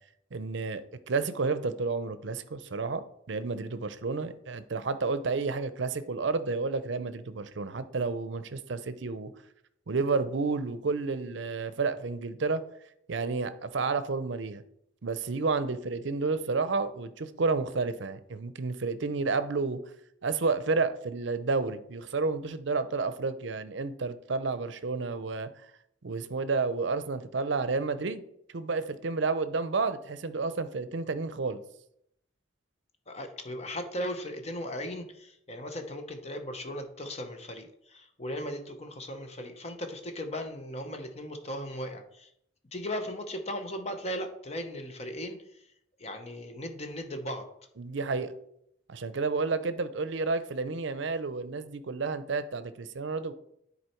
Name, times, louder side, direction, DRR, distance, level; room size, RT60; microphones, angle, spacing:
voice 1, 0.3-9.3 9.9-12.6 13.1-14.6 15.0-19.8 20.2-25.5 26.0-28.2 28.5-31.6 47.8-48.3 48.9-53.3, right 4 dB, 70° right, 13 dB, 0.6 m, -31 dB
voice 2, 33.1-42.3 42.7-45.7 46.0-47.5, equal, 35° left, 6 dB, 0.9 m, -37 dB
9.8 x 4.2 x 4.4 m, 0.73 s
head